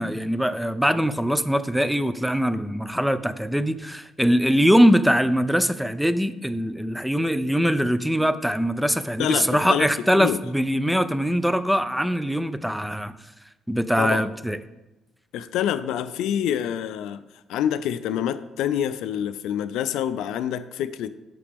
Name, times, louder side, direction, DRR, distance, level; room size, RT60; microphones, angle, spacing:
voice 1, 0.0-13.1 13.7-14.6, equal, ahead, 13 dB, 0.4 m, -22 dB
voice 2, 9.2-9.9 10.2-10.4 14.0-14.3 15.3-17.2 17.5-21.1, left 10 dB, 90° left, 13 dB, 0.4 m, -26 dB
8.3 x 5.9 x 3.5 m, 1.0 s
cardioid pair, 90°, 0 cm